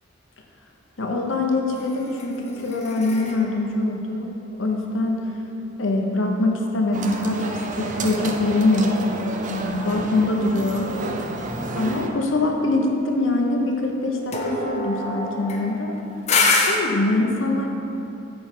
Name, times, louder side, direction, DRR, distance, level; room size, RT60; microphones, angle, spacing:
voice 1, 1.0-4.3 4.6-5.3 5.8-8.9 9.4-10.9 11.7-16.0 16.6-17.7, left 2 dB, 80° left, 1 dB, 0.9 m, -23 dB
sound 1, 1.8-5.2 14.3-16.8, left 3 dB, 35° left, 0.7 m, -26 dB
sound 2, 6.9-12.1, right 2 dB, 40° right, 0.5 m, -30 dB
8.0 x 5.3 x 4.4 m, 2.8 s
head